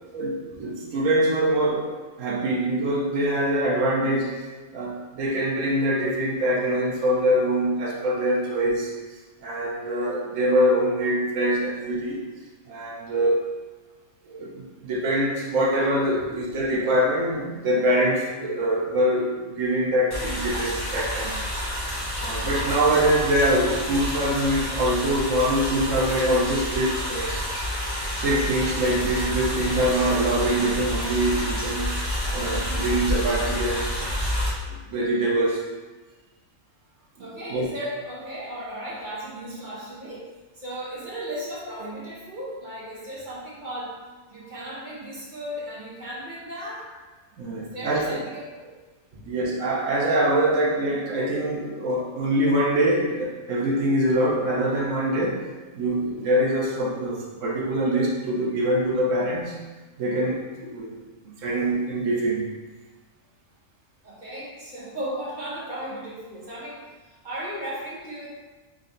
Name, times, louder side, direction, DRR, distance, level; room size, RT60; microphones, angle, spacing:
voice 1, 0.1-4.5 4.7-8.9 9.4-12.2 12.7-13.5 14.3-21.4 22.2-27.4 28.2-31.9 32.3-33.9 34.7-35.6 37.5-37.7 47.4-48.2 49.3-55.4 55.7-59.6 60.0-61.0 61.4-62.5, right 1 dB, 80° right, -3 dB, 1.1 m, -24 dB
sound 1, 20.1-34.5, equal, 20° left, 1.0 m, -29 dB
voice 2, 37.2-44.0 44.3-46.9 47.6-48.7 49.1-49.2 64.0-68.3, equal, 40° right, -7 dB, 1.2 m, -36 dB
3.8 x 3.2 x 3.8 m, 1.3 s
omnidirectional pair, 1.3 m